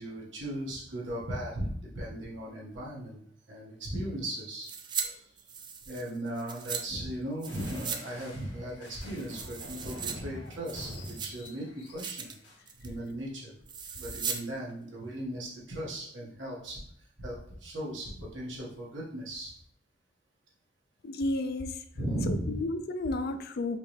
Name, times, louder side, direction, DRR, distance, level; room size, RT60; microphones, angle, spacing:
voice 1, 0.0-4.7 5.0-5.3 5.8-12.3 12.8-13.5 14.0-19.5 21.9-22.6, right 1 dB, 75° right, -5 dB, 1.7 m, -37 dB
sound 1, 4.6-5.1 5.4-6.8 7.4-8.0 8.3-8.4 8.9-10.1 10.5-11.5 11.9-12.3 12.7-13.0 13.7-14.4 14.7-14.8, right 7 dB, 25° right, 0.4 m, -38 dB
sound 2, 7.4-12.6, left 1 dB, 90° left, 1.8 m, -46 dB
voice 2, 21.0-21.8 22.5-23.8, left 2 dB, 55° left, 9 dB, 0.4 m, -32 dB
5.2 x 3.2 x 3.2 m, 0.67 s
head